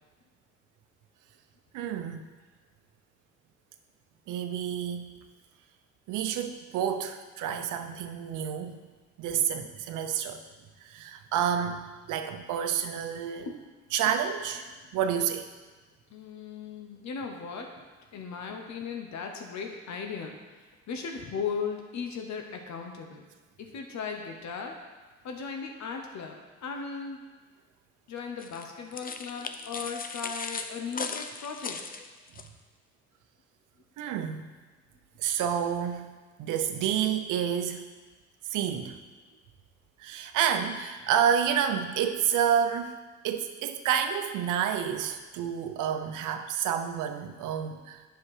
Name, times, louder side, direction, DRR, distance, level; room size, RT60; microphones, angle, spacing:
voice 1, 1.7-2.3 4.3-5.1 6.1-8.8 9.2-10.4 10.8-11.8 12.1-13.5 13.9-14.6 14.9-15.5 34.0-34.5 35.2-36.1 36.4-37.8 38.5-39.0 40.0-43.0 43.2-48.0, right 8 dB, 90° right, 7 dB, 0.7 m, -29 dB
voice 2, 16.1-17.8 18.1-23.3 23.6-24.8 25.2-26.3 26.6-27.2 28.1-31.8, left 5 dB, 65° left, 3 dB, 1.0 m, -37 dB
sound 1, 28.4-32.5, left 5 dB, 30° left, 0.5 m, -38 dB
7.5 x 5.8 x 4.9 m, 1.3 s
cardioid pair, 90°, 30 cm